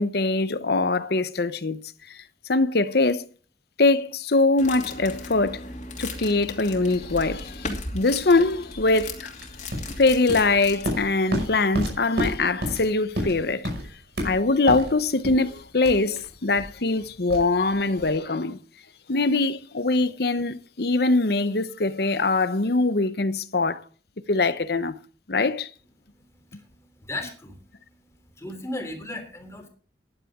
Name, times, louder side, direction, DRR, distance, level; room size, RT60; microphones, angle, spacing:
voice 1, 0.0-1.8 2.5-3.3 3.8-5.6 6.0-9.3 10.0-13.7 14.2-18.6 19.1-23.8 24.3-24.9 25.3-25.7, left 3 dB, 60° left, 0.9 m, -23 dB
sound 1, 4.6-11.0, left 2 dB, 40° left, 2.7 m, -37 dB
sound 2, 9.4-18.2, equal, 70° right, 5.9 m, -32 dB
voice 2, 27.0-27.6 28.3-29.7, left 1 dB, 15° left, 3.4 m, -35 dB
15.5 x 11.0 x 3.7 m
head